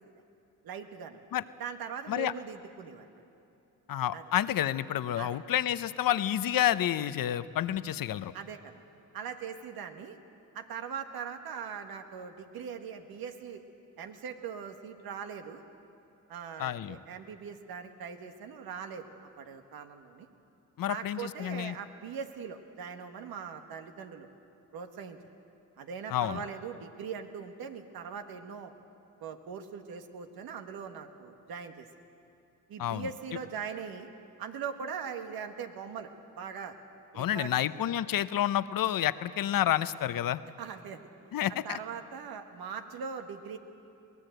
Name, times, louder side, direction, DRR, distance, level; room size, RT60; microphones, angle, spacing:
voice 1, 0.6-1.2 1.6-3.2 4.1-4.2 5.2-5.4 8.3-8.7 9.1-10.2 10.5-13.6 14.0-15.6 16.3-19.1 19.4-20.3 20.9-24.3 24.7-25.2 25.8-28.7 29.2-31.9 32.7-34.1 34.4-36.1 36.3-36.7 37.1-37.5 40.6-41.0 41.6-43.6, right 6 dB, 80° right, 6 dB, 1.6 m, -41 dB
voice 2, 3.9-8.3 16.6-17.0 20.8-21.8 26.1-26.4 32.8-33.1 37.2-40.4 41.3-41.8, left 11 dB, 70° left, 14 dB, 0.8 m, -29 dB
22.0 x 18.0 x 7.9 m, 2.8 s
supercardioid pair, 50°, 36 cm